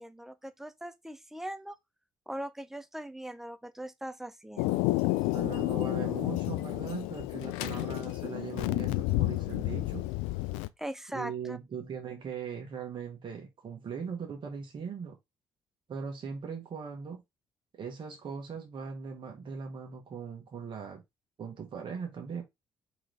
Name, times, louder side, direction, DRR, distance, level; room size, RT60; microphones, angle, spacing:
voice 1, 0.0-1.8 2.3-4.9 10.8-11.6, right 1 dB, 5° right, 0.5 m, -40 dB
Thunder, 4.6-10.7, left 19 dB, 65° left, 0.4 m, -30 dB
voice 2, 5.3-10.0 11.1-15.2 15.9-17.2 17.7-21.0 21.4-22.4, right 6 dB, 45° right, 1.2 m, -40 dB
3.7 x 3.0 x 3.2 m
figure-of-eight pair, 45°, 12 cm